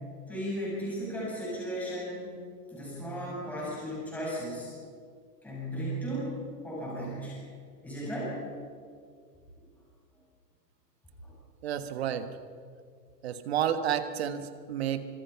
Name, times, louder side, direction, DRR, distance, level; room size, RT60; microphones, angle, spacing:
voice 1, 0.3-2.3 2.7-4.7 5.4-6.3 6.6-7.4 7.8-8.4 11.2-11.3, equal, 5° left, -7 dB, 7.3 m, -35 dB
voice 2, 11.6-12.3 13.2-15.0, right 9 dB, 40° right, 10 dB, 1.4 m, -30 dB
25.0 x 22.5 x 5.8 m, 2.1 s
hypercardioid pair, 170°, 50 cm